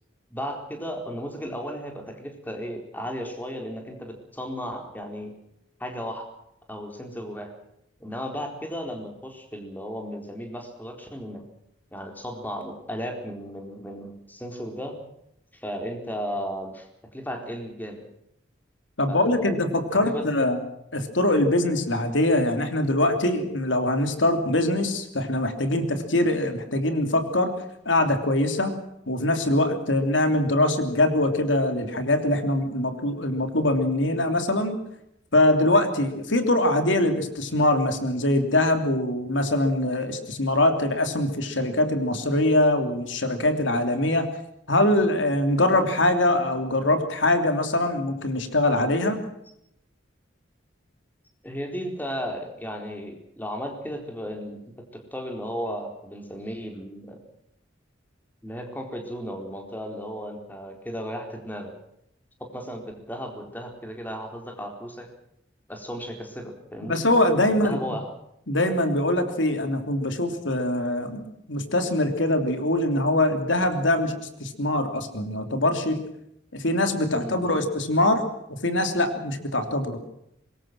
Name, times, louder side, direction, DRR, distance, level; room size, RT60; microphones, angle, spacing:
voice 1, 0.3-5.3 5.8-6.3 6.7-7.5 8.0-11.4 11.9-15.0 15.5-16.9 17.1-18.0 19.1-19.6 19.9-20.2 51.4-57.2 58.4-61.7 62.4-65.1 65.7-67.0 67.5-68.1 77.2-77.6, equal, 10° left, 3 dB, 4.3 m, -35 dB
voice 2, 19.0-20.6 20.9-27.5 27.8-28.8 29.1-34.8 35.3-44.3 44.7-49.2 66.8-67.9 68.5-76.0 76.5-78.2 78.6-80.0, left 1 dB, 85° left, 7 dB, 3.1 m, -23 dB
25.0 x 22.0 x 6.1 m, 0.77 s
head